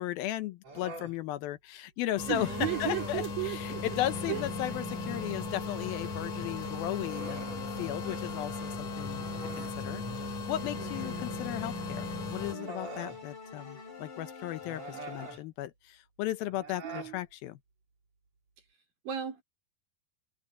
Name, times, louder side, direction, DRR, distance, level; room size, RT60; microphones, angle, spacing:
voice 1, 0.0-2.5 2.8-7.4 7.8-9.3 9.6-17.6, left 14 dB, 80° left, 2.7 m, -36 dB
Human voice, 0.6-1.2 2.4-3.3 4.0-4.5 6.5-8.3 8.6-8.7 9.2-10.4 11.6-11.7 12.4-13.2 14.6-15.4 16.5-17.2, right 3 dB, 45° right, 5.4 m, -45 dB
sound 1, 2.2-12.5, left 3 dB, 55° left, 4.2 m, -37 dB
voice 2, 2.3-3.9 4.3-4.5 10.8-11.5 16.8-17.2 19.0-19.4, right 11 dB, 70° right, 5.8 m, -36 dB
sound 2, 3.6-10.0 10.4-15.4, left 3 dB, 35° left, 5.1 m, -45 dB
omnidirectional pair, 4.2 m